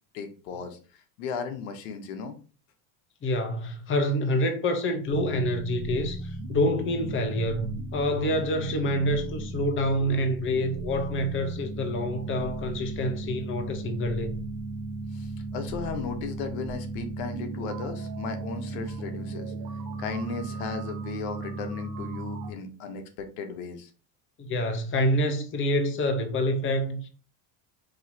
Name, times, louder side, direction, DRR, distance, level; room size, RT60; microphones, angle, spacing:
voice 1, 0.1-0.8 1.2-2.3 15.1-19.5 20.0-23.9, left 5 dB, 75° left, 1.0 m, -36 dB
voice 2, 3.2-14.4 24.4-27.1, left 1 dB, 30° left, 0.8 m, -27 dB
sound 1, 5.0-22.5, right 3 dB, 55° right, 1.1 m, -36 dB
5.3 x 2.9 x 2.7 m
supercardioid pair, 110°, 44 cm